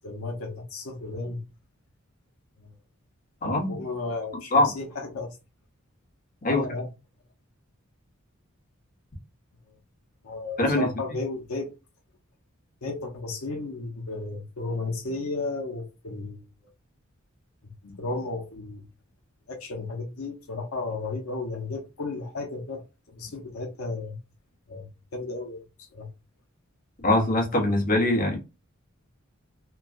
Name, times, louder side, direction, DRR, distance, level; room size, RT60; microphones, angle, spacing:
voice 1, 0.0-1.4 2.6-2.7 3.7-5.4 6.4-6.9 10.2-11.7 12.8-16.4 17.6-18.8 19.5-22.8 23.1-24.2 24.7-26.1, left 3 dB, 85° left, 0.7 m, -34 dB
voice 2, 3.4-3.8 4.5-4.7 6.4-6.6 10.6-10.9 27.0-28.4, left 1 dB, 40° left, 1.1 m, -22 dB
3.2 x 2.3 x 2.4 m
head